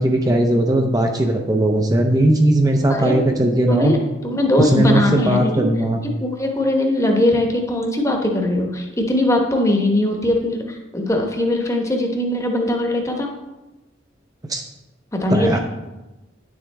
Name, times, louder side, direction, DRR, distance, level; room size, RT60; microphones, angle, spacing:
voice 1, 0.0-3.9 4.6-6.0 14.5-14.6 15.3-15.6, right 1 dB, 20° right, 3 dB, 0.6 m, -18 dB
voice 2, 2.9-3.2 3.7-4.0 4.2-5.7 6.2-13.3 15.2-15.6, left 1 dB, 15° left, 2 dB, 1.0 m, -20 dB
10.0 x 7.1 x 3.4 m, 1.1 s
head